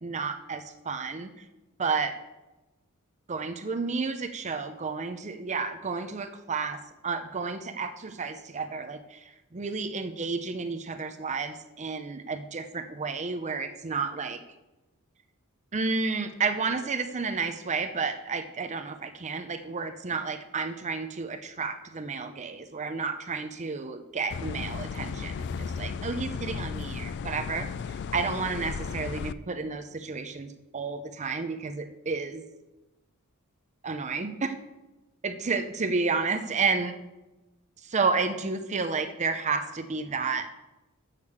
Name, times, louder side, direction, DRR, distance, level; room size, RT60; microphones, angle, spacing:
voice 1, 0.0-1.4 1.8-2.1 3.3-14.4 15.7-32.4 33.8-34.5 35.2-36.9 37.8-40.5, right 4 dB, 30° right, 8 dB, 0.6 m, -31 dB
sound 1, 24.3-29.3, left 6 dB, 50° left, 0.3 m, -35 dB
8.4 x 6.6 x 7.1 m, 1.0 s
head